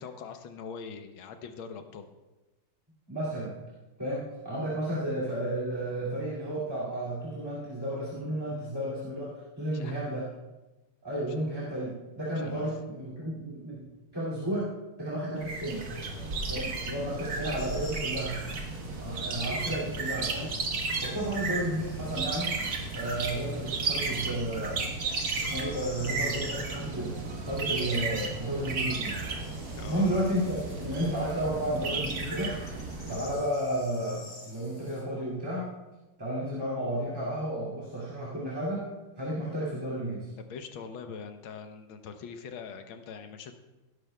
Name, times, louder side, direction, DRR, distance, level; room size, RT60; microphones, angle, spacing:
voice 1, 0.0-2.1 9.7-10.0 12.3-12.7 16.5-16.7 29.7-30.2 37.8-37.9 40.4-43.5, left 6 dB, 75° left, 7 dB, 1.6 m, -43 dB
voice 2, 3.1-3.6 4.0-10.3 11.0-13.8 14.1-14.7 15.0-15.8 16.5-18.4 19.0-20.6 21.0-22.6 22.9-24.8 25.3-27.1 27.4-29.2 29.8-32.6 33.1-35.7 36.2-38.9 39.2-40.3, right 1 dB, 10° right, -8 dB, 2.1 m, -32 dB
sound 1, 15.4-33.4, right 3 dB, 50° right, 1.5 m, -34 dB
sound 2, 17.2-31.4, right 5 dB, 80° right, 3.2 m, -49 dB
sound 3, 17.6-35.0, left 2 dB, 40° left, 2.9 m, -50 dB
17.5 x 10.5 x 2.3 m, 1.1 s
omnidirectional pair, 2.4 m